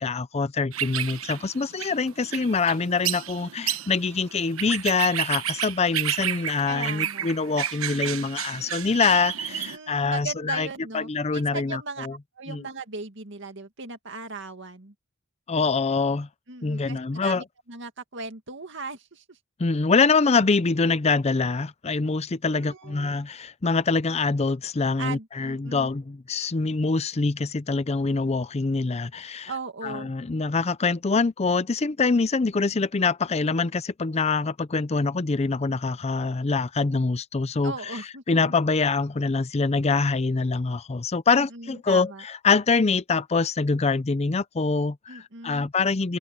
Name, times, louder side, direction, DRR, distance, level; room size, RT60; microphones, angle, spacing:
voice 1, 0.0-10.7 10.9-12.1 12.5-12.6 15.5-16.3 16.6-17.4 19.6-29.5 29.8-38.0 38.3-46.2, left 4 dB, 30° left, 0.5 m, -25 dB
sound 1, 0.7-9.8, right 11 dB, 90° right, 1.1 m, -31 dB
voice 2, 6.7-7.3 9.5-12.1 12.4-14.9 16.5-19.4 22.5-23.2 25.0-25.9 29.5-30.1 37.6-38.5 41.3-42.2 45.1-45.7, right 4 dB, 60° right, 2.2 m, -38 dB
head